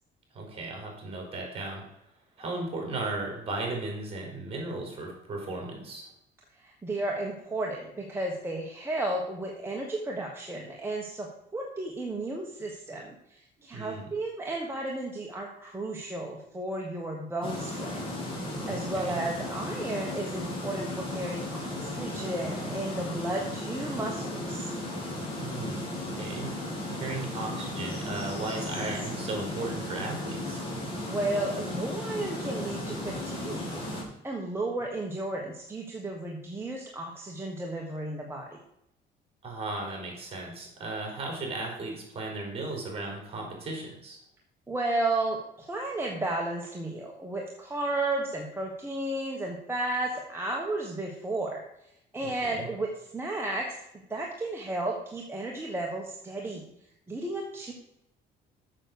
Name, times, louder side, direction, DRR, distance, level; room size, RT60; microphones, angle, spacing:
voice 1, 0.3-1.8 2.4-6.1 13.7-14.0 18.9-19.2 25.3-25.9 26.1-26.5 26.9-30.7 39.4-44.2 52.2-52.7, right 2 dB, 35° right, 0 dB, 4.2 m, -36 dB
voice 2, 6.5-24.7 31.1-33.7 34.0-38.6 44.7-53.8 54.1-56.7 57.1-57.7, right 2 dB, 15° right, -1 dB, 1.5 m, -33 dB
sound 1, 17.4-34.0, left 1 dB, 30° left, 3.7 m, -35 dB
7.5 x 6.6 x 6.6 m, 0.81 s
cardioid pair, 110°, 17 cm